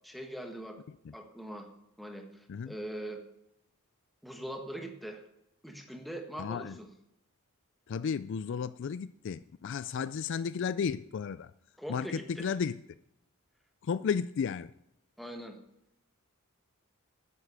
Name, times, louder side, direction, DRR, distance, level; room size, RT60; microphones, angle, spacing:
voice 1, 0.0-0.8 1.1-1.7 2.0-3.2 4.2-5.2 5.6-6.9 11.8-12.5 15.2-15.6, right 1 dB, ahead, 1.5 m, -42 dB
voice 2, 6.4-6.8 7.9-11.5 11.9-12.8 13.8-14.7, left 6 dB, 55° left, 0.3 m, -33 dB
9.8 x 9.7 x 6.8 m
head